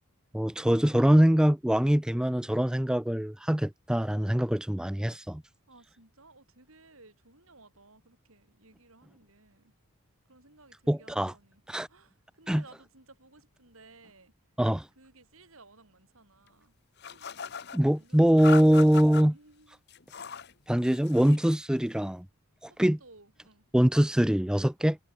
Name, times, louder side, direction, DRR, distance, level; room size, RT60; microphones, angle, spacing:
voice 1, 0.3-5.4 10.9-11.3 11.7-11.9 12.5-12.6 14.6-14.9 17.7-19.3 20.7-22.3 22.6-23.0 23.7-25.0, equal, 5° right, 0.3 m, -23 dB
voice 2, 5.7-9.7 10.3-14.3 14.9-16.8 17.0-17.3 17.7-19.8 22.7-23.7, right 3 dB, 70° right, 6.5 m, -57 dB
sound 1, 17.0-17.8 18.4-19.2 19.9-20.5 20.8-21.4, left 7 dB, 50° left, 1.2 m, -38 dB
head